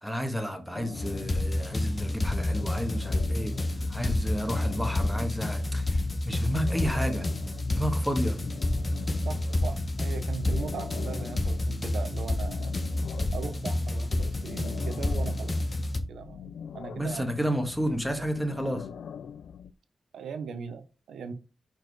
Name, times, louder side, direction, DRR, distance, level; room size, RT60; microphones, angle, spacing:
voice 1, 0.0-3.5 3.9-7.3 7.7-8.4 17.0-18.9, equal, ahead, 1.5 m, -31 dB
sound 1, 0.7-19.7, left 8 dB, 90° left, 0.3 m, -43 dB
sound 2, 1.0-16.0, left 1 dB, 40° left, 1.2 m, -29 dB
voice 2, 9.2-12.7 13.3-15.6 16.1-16.5 16.7-17.3 17.8-18.3 20.1-21.3, right 5 dB, 90° right, 0.8 m, -39 dB
4.8 x 4.4 x 4.6 m
cardioid pair, 55°, 0 cm